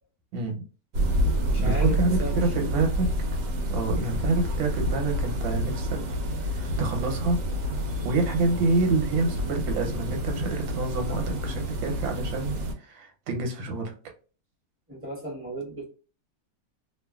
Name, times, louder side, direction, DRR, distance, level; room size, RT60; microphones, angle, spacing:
voice 1, 0.3-0.6 1.6-3.1 3.7-6.0 6.4-7.4 8.0-13.9, right 3 dB, 90° right, 3 dB, 1.5 m, -27 dB
sound 1, 0.9-12.7, equal, 75° right, 1.3 m, -28 dB
voice 2, 1.4-2.7 14.9-15.8, right 1 dB, 10° right, -4 dB, 1.0 m, -36 dB
3.0 x 2.4 x 2.3 m, 0.35 s
omnidirectional pair, 2.0 m